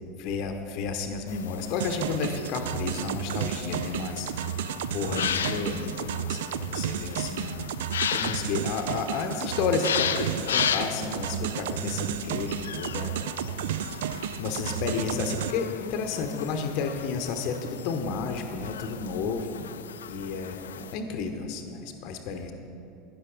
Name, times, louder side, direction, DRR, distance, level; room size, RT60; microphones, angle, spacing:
voice 1, 0.2-4.3 4.9-7.7 8.1-13.2 14.4-19.7 20.1-22.5, left 5 dB, 50° left, 6 dB, 0.8 m, -31 dB
sound 1, 1.3-20.9, left 9 dB, 70° left, 0.3 m, -36 dB
sound 2, 1.8-15.5, right 10 dB, 65° right, 0.3 m, -32 dB
12.0 x 9.7 x 3.9 m, 2.7 s
figure-of-eight pair, 75°, 0 cm